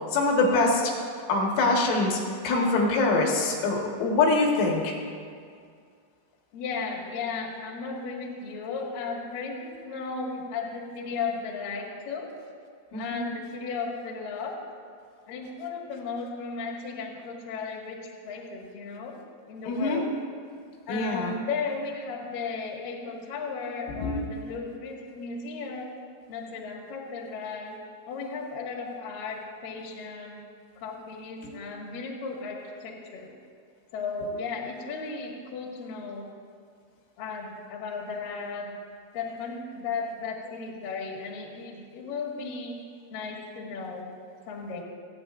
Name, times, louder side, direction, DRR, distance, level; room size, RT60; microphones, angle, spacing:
voice 1, 0.1-0.9 1.3-2.2 2.4-4.9 12.9-13.2 19.7-20.0 20.9-21.3 23.9-24.2 31.4-31.5, left 3 dB, 80° left, -1 dB, 4.0 m, -24 dB
voice 2, 6.5-12.3 13.0-14.6 15.3-19.2 19.5-20.2 20.9-26.0 26.3-30.4 30.8-33.3 33.9-36.3 37.2-38.8 39.1-42.8 43.1-44.1 44.5-44.8, left 4 dB, 55° left, -2 dB, 2.9 m, -35 dB
29.0 x 9.8 x 2.5 m, 2.2 s
omnidirectional pair, 5.5 m